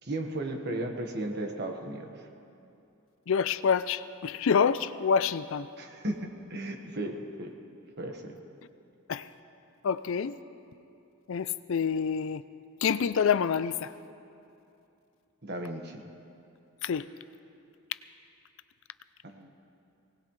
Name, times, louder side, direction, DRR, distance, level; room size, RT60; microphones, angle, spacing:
voice 1, 0.0-2.1 5.8-7.5 8.0-8.3 15.4-16.0 19.2-19.5, right 1 dB, 50° right, 3 dB, 1.4 m, -35 dB
voice 2, 3.3-5.7 9.1-9.3 9.8-10.4 11.3-12.4 12.8-13.9 16.8-17.1, left 6 dB, 65° left, 14 dB, 0.4 m, -27 dB
20.5 x 18.5 x 3.2 m, 2.7 s
head